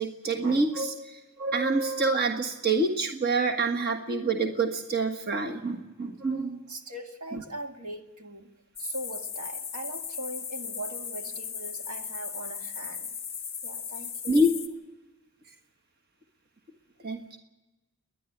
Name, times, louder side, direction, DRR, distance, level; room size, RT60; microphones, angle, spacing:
voice 1, 0.0-6.6 7.3-7.4 14.3-14.5 17.0-17.4, right 2 dB, 45° right, 4 dB, 1.5 m, -27 dB
voice 2, 6.7-8.5 8.8-13.1 13.6-14.5, right 1 dB, 85° right, 4 dB, 2.1 m, -40 dB
sound 1, 8.8-14.7, left 7 dB, 10° left, 1.3 m, -37 dB
28.5 x 11.0 x 9.3 m, 1.1 s
head